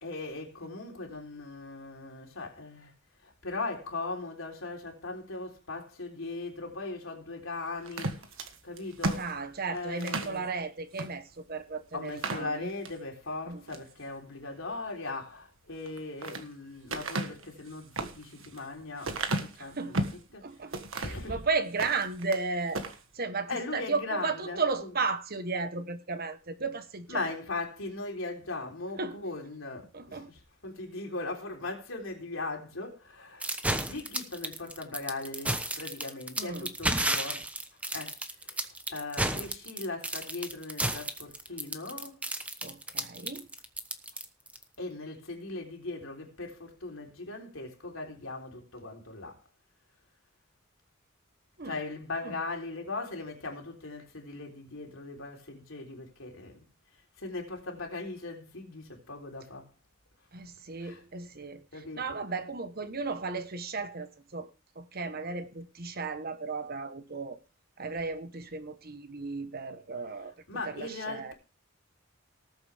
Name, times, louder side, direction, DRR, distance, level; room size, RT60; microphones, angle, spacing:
voice 1, 0.0-2.9 3.2-8.3 8.6-9.3 9.7-10.5 11.9-20.4 21.0-21.4 21.9-22.0 23.5-24.9 27.1-37.4 37.9-42.2 44.8-49.4 51.6-56.6 57.2-59.7 60.8-61.0 61.7-62.2 70.2-71.3, left 3 dB, 75° left, 3.7 m, -39 dB
sound 1, 7.9-10.4 10.9-11.1 11.5-11.6 12.0-13.0 13.5-13.9 15.7-16.5 16.9-20.2 20.7-21.3 21.7-22.4 22.7-23.0, right 2 dB, 75° right, 1.6 m, -34 dB
voice 2, 9.2-12.7 13.5-13.6 19.6-20.0 20.4-22.8 23.1-27.3 29.0-29.2 29.9-30.3 36.4-36.7 42.6-43.5 51.6-51.7 52.2-52.3 60.3-61.6 62.0-64.5 64.8-67.4 67.8-70.3 70.6-71.3, right 4 dB, 50° right, 1.2 m, -34 dB
sound 2, 33.4-44.6, right 1 dB, 5° right, 1.0 m, -32 dB
19.0 x 7.8 x 3.5 m
head